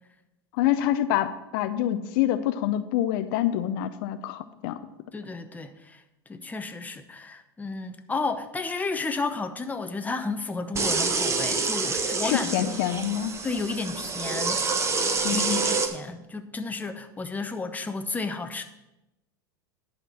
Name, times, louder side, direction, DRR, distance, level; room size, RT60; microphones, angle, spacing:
voice 1, 0.5-4.8 12.2-13.3 15.2-15.7, left 12 dB, 60° left, 11 dB, 0.6 m, -26 dB
voice 2, 5.1-6.0 6.3-12.7 13.4-14.7 15.3-18.6, left 3 dB, 10° left, 7 dB, 0.8 m, -32 dB
sound 1, 10.8-15.9, right 4 dB, 20° right, 1.1 m, -27 dB
11.0 x 4.4 x 7.3 m, 0.95 s
hypercardioid pair, 100°, 13 cm